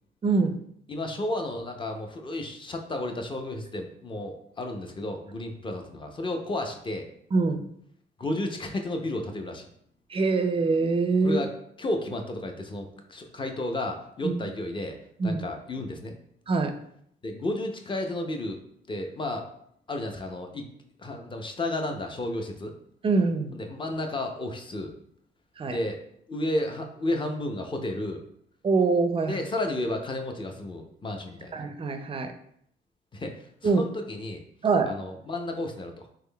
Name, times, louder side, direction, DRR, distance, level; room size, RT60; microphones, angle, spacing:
voice 1, 0.2-0.5 7.3-7.6 10.1-11.4 14.2-14.3 15.2-15.4 16.5-16.7 23.0-23.5 25.6-25.8 28.6-29.4 31.5-32.3 33.6-33.8 34.6-34.9, right 4 dB, 30° right, 7 dB, 0.4 m, -24 dB
voice 2, 0.9-7.1 8.2-9.7 11.2-11.5 11.8-15.0 15.2-16.2 17.2-19.5 19.9-20.6 21.0-22.8 23.5-24.9 25.6-26.0 26.3-28.2 29.3-31.6 33.1-34.4 34.8-35.9, left 1 dB, 25° left, 4 dB, 0.5 m, -32 dB
3.5 x 3.2 x 2.2 m, 0.69 s
cardioid pair, 90°, 20 cm